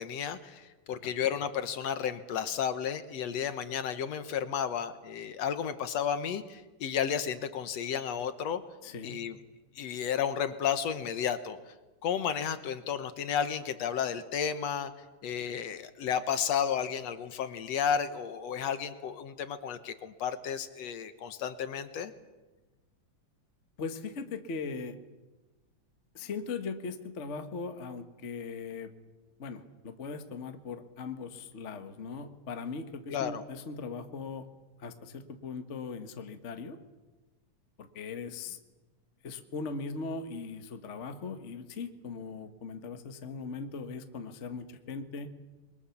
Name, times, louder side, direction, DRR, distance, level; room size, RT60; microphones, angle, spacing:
voice 1, 0.0-8.6 9.0-9.4 9.8-11.6 12.0-14.9 15.2-22.1 33.1-33.4, left 8 dB, 65° left, 11 dB, 2.0 m, -32 dB
voice 2, 8.8-9.2 23.8-25.0 26.1-28.9 29.4-34.5 34.8-36.8 37.8-38.6 39.2-45.3, left 4 dB, 45° left, 7 dB, 0.9 m, -39 dB
28.5 x 22.5 x 7.2 m, 1.2 s
omnidirectional pair, 3.5 m